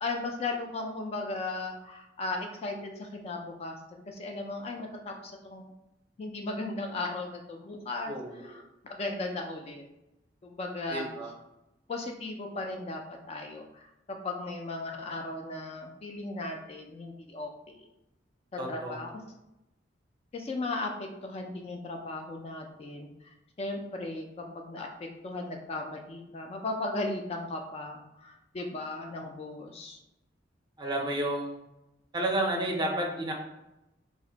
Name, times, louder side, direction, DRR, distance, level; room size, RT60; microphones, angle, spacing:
voice 1, 0.0-3.7 4.1-5.7 6.2-8.6 8.9-9.8 10.4-11.1 11.9-13.9 14.2-17.8 18.7-19.1 20.3-23.1 23.6-30.0, left 2 dB, 35° left, 2 dB, 0.3 m, -36 dB
voice 2, 8.1-8.6 10.9-11.3 18.6-19.0 30.8-31.6 32.1-33.3, right 1 dB, 25° right, 0 dB, 0.5 m, -31 dB
2.4 x 2.1 x 3.8 m, 0.92 s
head